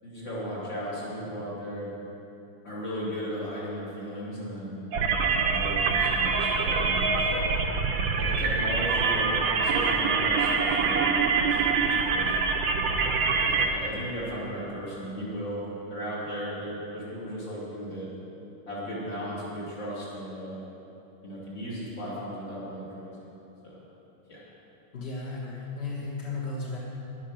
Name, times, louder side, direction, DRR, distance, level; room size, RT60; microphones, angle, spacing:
voice 1, 0.0-1.9 2.6-4.8 5.3-7.5 8.1-15.6 15.9-18.1 18.7-20.6 21.2-23.3 23.6-23.8 24.3-24.4, equal, 55° left, -9 dB, 3.7 m, -36 dB
sound 1, 4.9-13.7, right 5 dB, 65° right, 1.4 m, -25 dB
voice 2, 24.9-26.8, left 3 dB, 35° left, -6 dB, 1.4 m, -34 dB
11.0 x 10.0 x 6.4 m, 2.9 s
omnidirectional pair, 2.4 m